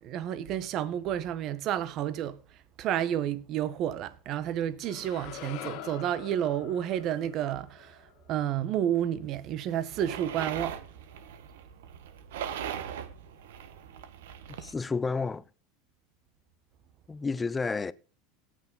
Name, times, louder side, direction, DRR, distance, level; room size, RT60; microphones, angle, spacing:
voice 1, 0.0-10.8, right 10 dB, 50° right, 1.3 m, -31 dB
sound 1, 4.8-9.0, left 11 dB, 60° left, 1.9 m, -45 dB
sound 2, 9.9-14.7, right 9 dB, 80° right, 1.4 m, -40 dB
voice 2, 14.6-15.4 17.1-17.9, left 4 dB, 20° left, 0.7 m, -30 dB
17.0 x 6.5 x 3.9 m
hypercardioid pair, 100°, 0 cm